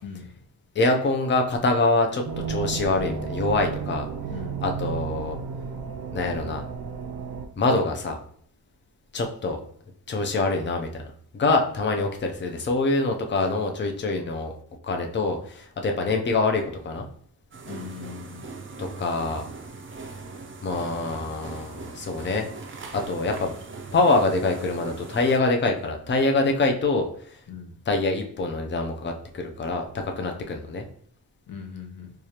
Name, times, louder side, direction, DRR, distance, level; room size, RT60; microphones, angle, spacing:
voice 1, 0.7-2.2 2.5-4.1 4.6-5.4 6.1-6.6 7.6-8.2 9.1-9.6 10.1-10.9 11.3-14.5 14.8-17.1 18.8-19.4 20.6-22.4 22.9-23.5 23.9-27.4 27.9-29.8 30.2-30.9, left 3 dB, 30° left, 3 dB, 0.5 m, -25 dB
sound 1, 2.3-7.5, right 6 dB, 85° right, 0.5 m, -33 dB
voice 2, 4.3-4.6 17.7-18.5 27.5-27.8 31.5-32.1, left 6 dB, 65° left, 3 dB, 0.8 m, -39 dB
sound 2, 17.5-25.4, right 4 dB, 35° right, 0.5 m, -40 dB
4.7 x 2.4 x 2.8 m, 0.63 s
wide cardioid pair, 160°, 36 cm